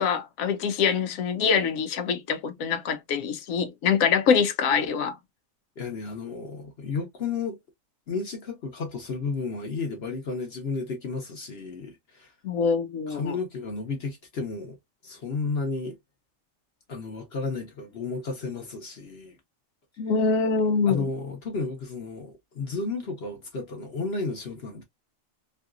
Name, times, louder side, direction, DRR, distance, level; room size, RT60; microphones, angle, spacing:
voice 1, 0.0-5.2 12.4-13.3 20.0-21.1, left 6 dB, 85° left, 1.1 m, -24 dB
voice 2, 5.8-7.6 8.1-12.3 13.1-14.8 15.0-16.0 16.9-19.4 20.9-24.8, left 4 dB, 55° left, 1.0 m, -32 dB
3.1 x 2.8 x 2.4 m
omnidirectional pair, 1.4 m